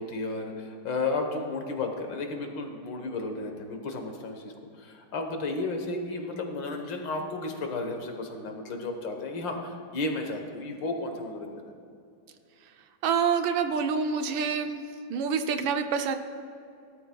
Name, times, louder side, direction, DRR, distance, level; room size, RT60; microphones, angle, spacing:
voice 1, 0.0-4.5 4.8-11.7, left 3 dB, 70° left, 4 dB, 1.9 m, -33 dB
voice 2, 13.0-14.8 15.1-16.1, right 6 dB, 85° right, 7 dB, 1.5 m, -27 dB
17.5 x 12.5 x 2.3 m, 2.5 s
omnidirectional pair, 2.1 m